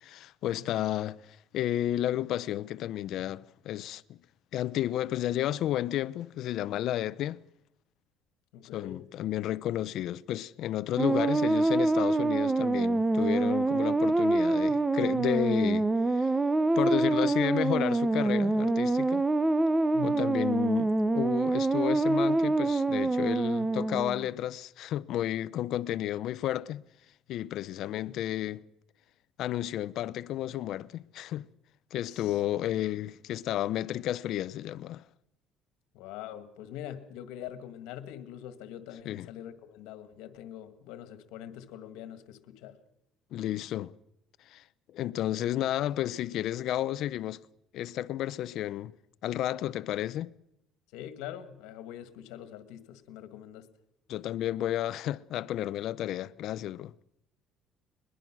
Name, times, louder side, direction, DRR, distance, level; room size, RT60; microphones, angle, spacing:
voice 1, 0.0-4.2 4.5-7.4 8.7-16.3 16.8-19.2 20.0-26.8 27.3-28.7 29.4-31.5 31.9-35.0 39.0-39.3 43.3-43.9 44.5-47.4 47.7-48.9 49.2-50.3 54.1-56.9, left 13 dB, 65° left, 0.7 m, -32 dB
voice 2, 0.6-0.9 8.5-9.0 19.9-20.3 27.9-28.2 32.1-32.4 35.9-42.8 50.9-53.7, left 10 dB, 85° left, 1.9 m, -44 dB
sound 1, 11.0-24.3, right 2 dB, 15° right, 0.8 m, -26 dB
22.0 x 21.5 x 6.2 m
cardioid pair, 120°, 0 cm